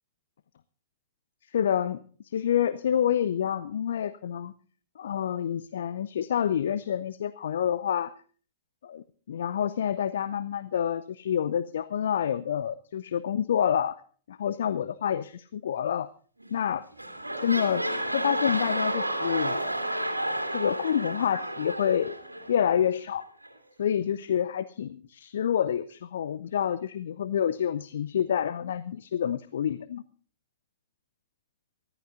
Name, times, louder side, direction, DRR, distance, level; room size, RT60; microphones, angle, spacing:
voice 1, 1.5-4.5 5.0-8.1 8.8-14.0 14.3-16.1 16.5-16.8 17.4-19.6 20.5-22.2 22.5-23.2 23.8-30.0, left 9 dB, 60° left, 15 dB, 0.6 m, -28 dB
sound 1, 16.4-16.7 16.9-22.8 23.4-23.5, right 1 dB, 85° right, 2.2 m, -31 dB
24.0 x 14.0 x 2.5 m, 0.42 s
figure-of-eight pair, 105°, 0 cm